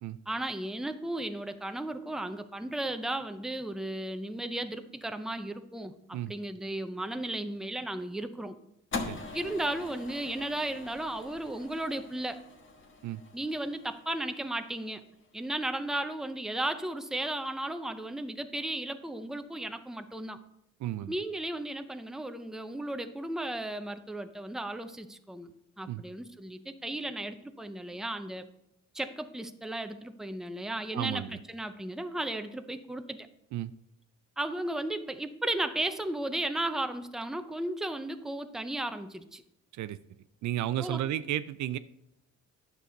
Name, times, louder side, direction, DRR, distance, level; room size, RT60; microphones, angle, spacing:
voice 1, 0.3-8.6 9.3-12.4 13.3-15.0 15.3-20.4 21.1-25.5 25.8-28.4 28.9-33.3 34.4-39.4 40.8-41.0, right 1 dB, ahead, 8 dB, 0.6 m, -35 dB
sound 1, 8.9-15.3, left 3 dB, 40° left, 1.3 m, -43 dB
voice 2, 20.8-21.1 25.9-26.0 30.9-31.4 33.5-33.7 39.7-40.0 40.4-41.8, right 13 dB, 70° right, 14 dB, 0.5 m, -33 dB
9.8 x 6.9 x 3.9 m, 0.80 s
cardioid pair, 90°, 30 cm